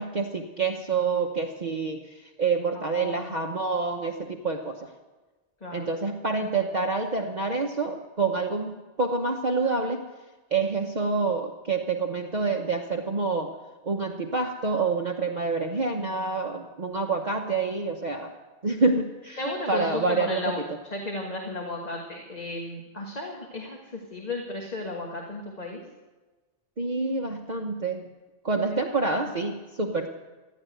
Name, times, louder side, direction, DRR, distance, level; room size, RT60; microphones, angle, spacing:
voice 1, 0.0-4.9 5.7-10.0 10.5-13.5 13.8-18.3 18.6-20.7 26.8-28.0 28.4-30.1, right 4 dB, 40° right, 2 dB, 1.0 m, -27 dB
voice 2, 2.9-3.3 5.6-5.9 19.4-20.6 20.9-25.8 28.7-29.1, left 2 dB, 35° left, 0 dB, 1.7 m, -34 dB
15.5 x 9.8 x 9.1 m, 1.2 s
omnidirectional pair, 1.2 m